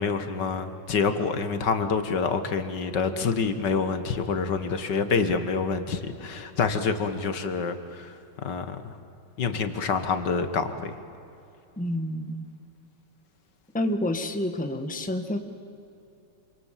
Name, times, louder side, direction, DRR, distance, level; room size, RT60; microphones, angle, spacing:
voice 1, 0.0-8.1 8.4-8.9 9.4-10.9, left 5 dB, 70° left, 9 dB, 2.0 m, -27 dB
voice 2, 11.8-12.4 13.7-15.4, left 1 dB, 5° left, 6 dB, 1.3 m, -28 dB
27.5 x 26.0 x 7.5 m, 2.7 s
omnidirectional pair, 2.0 m